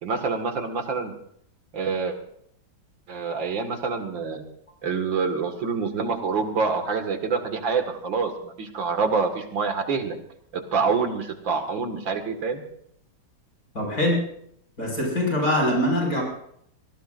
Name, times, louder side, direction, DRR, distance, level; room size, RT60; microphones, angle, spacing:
voice 1, 0.0-1.1 1.7-2.2 3.1-4.4 4.8-10.2 10.5-12.6, right 5 dB, 75° right, 6 dB, 2.6 m, -26 dB
voice 2, 13.7-14.2 14.8-16.2, left 1 dB, 45° left, 0 dB, 6.3 m, -23 dB
25.5 x 18.5 x 2.6 m, 0.69 s
omnidirectional pair, 2.1 m